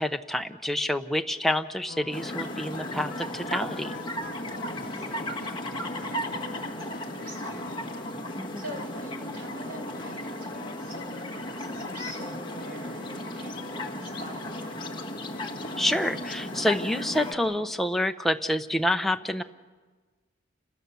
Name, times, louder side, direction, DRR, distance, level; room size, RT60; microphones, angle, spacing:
voice 1, 0.0-3.9 8.4-8.6 15.8-19.4, left 1 dB, ahead, 6 dB, 0.8 m, -28 dB
sound 1, 1.9-17.6, left 3 dB, 50° left, 3.3 m, -45 dB
sound 2, 2.1-17.3, left 1 dB, 25° left, 1.8 m, -35 dB
voice 2, 4.5-5.6 5.9-7.7 8.0-8.1 8.5-14.9, equal, 50° right, 2 dB, 6.9 m, -45 dB
29.5 x 26.5 x 7.0 m, 1.4 s
head